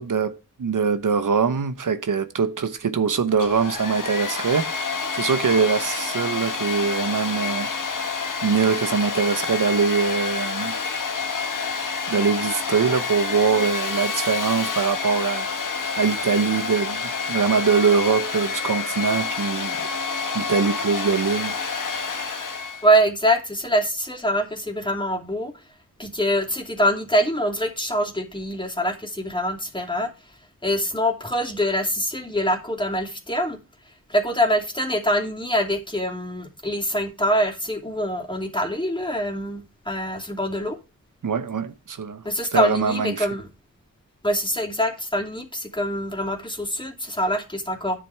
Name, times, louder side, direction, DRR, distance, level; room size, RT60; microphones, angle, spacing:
voice 1, 0.0-4.9 5.1-7.7 8.4-10.7 12.1-15.5 16.0-19.9 20.3-21.6 41.2-42.2 42.5-43.3, right 5 dB, 70° right, 1.0 m, -23 dB
Domestic sounds home sounds, 3.3-22.9, left 5 dB, 70° left, 1.6 m, -28 dB
voice 2, 22.8-25.5 26.0-30.1 30.6-33.6 34.1-40.8 42.2-43.5 44.2-48.0, equal, 15° left, 2.9 m, -24 dB
9.9 x 7.6 x 3.4 m
cardioid pair, 45°, 33 cm